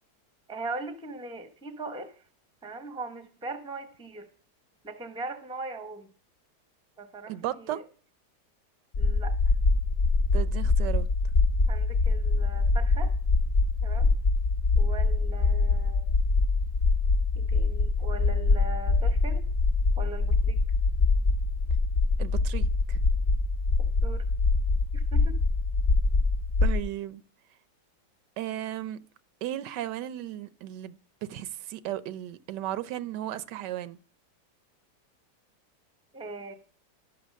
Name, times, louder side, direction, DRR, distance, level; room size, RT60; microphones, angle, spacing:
voice 1, 0.5-2.2 2.6-4.3 4.8-6.1 7.0-7.8 9.0-9.5 11.7-13.1 13.8-14.1 14.8-16.1 17.3-19.4 20.0-20.6 23.8-24.3 24.9-25.4 36.1-36.5, right 2 dB, 5° right, 0.5 m, -40 dB
voice 2, 7.3-7.8 10.3-11.1 22.2-23.0 26.6-27.2 28.4-29.0 29.4-34.0, right 13 dB, 90° right, 1.3 m, -35 dB
sound 1, 8.9-26.8, left 3 dB, 75° left, 0.4 m, -24 dB
12.0 x 5.8 x 6.4 m
omnidirectional pair, 1.8 m